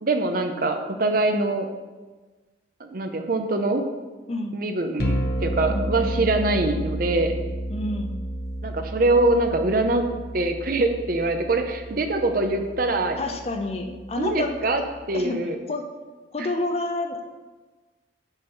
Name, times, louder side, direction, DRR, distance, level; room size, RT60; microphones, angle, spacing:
voice 1, 0.0-1.6 2.8-3.8 4.5-7.3 8.6-10.0 10.3-13.2 14.2-15.6, right 2 dB, 50° right, 6 dB, 0.6 m, -23 dB
sound 1, 5.0-15.0, equal, 55° left, 0.9 m, -32 dB
voice 2, 5.7-6.2 7.7-8.1 13.2-14.5 15.1-15.4 15.7-15.9 16.3-17.3, left 2 dB, 35° left, 5 dB, 0.6 m, -29 dB
5.8 x 5.4 x 5.4 m, 1.3 s
head